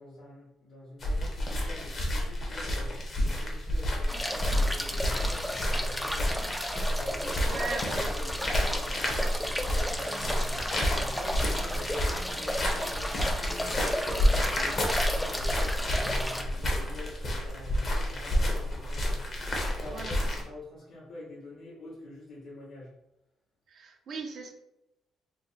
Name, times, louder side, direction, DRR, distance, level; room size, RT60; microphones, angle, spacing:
voice 1, 0.0-6.6 6.9-19.2 19.8-22.9, left 2 dB, 80° left, -11 dB, 1.2 m, -46 dB
sound 1, 1.0-20.4, equal, 45° left, 0.9 m, -30 dB
sound 2, 4.1-16.4, equal, 5° left, 0.4 m, -34 dB
voice 2, 7.5-8.1 19.9-20.4 23.7-24.5, right 4 dB, 65° right, 3 dB, 0.6 m, -38 dB
3.1 x 2.1 x 4.0 m, 0.86 s
cardioid pair, 90°, 0 cm